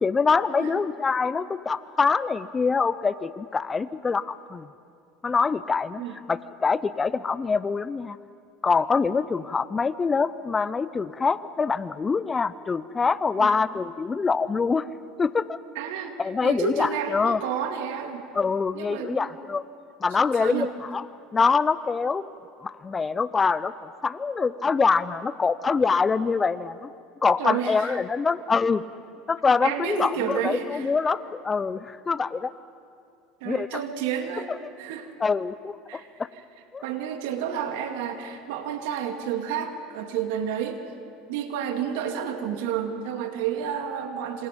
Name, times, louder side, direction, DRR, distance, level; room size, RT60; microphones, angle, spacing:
voice 1, 0.0-4.7 5.2-6.0 6.3-8.2 8.6-14.8 15.2-15.6 16.2-17.4 18.3-19.6 20.0-21.1 21.3-22.3 22.6-23.7 24.0-26.9 27.2-28.8 29.3-32.5 33.4-33.7 34.5-34.6 35.2-36.3 36.7-36.8, left 5 dB, 20° left, 16 dB, 0.6 m, -24 dB
voice 2, 15.8-18.3 18.7-19.3 20.2-20.7 27.4-28.0 29.6-30.9 33.4-34.5 34.8-35.1 35.9-36.1 36.8-40.8 41.3-44.5, right 8 dB, 75° right, 6 dB, 2.4 m, -30 dB
27.5 x 26.5 x 5.3 m, 2.5 s
supercardioid pair, 110°, 0 cm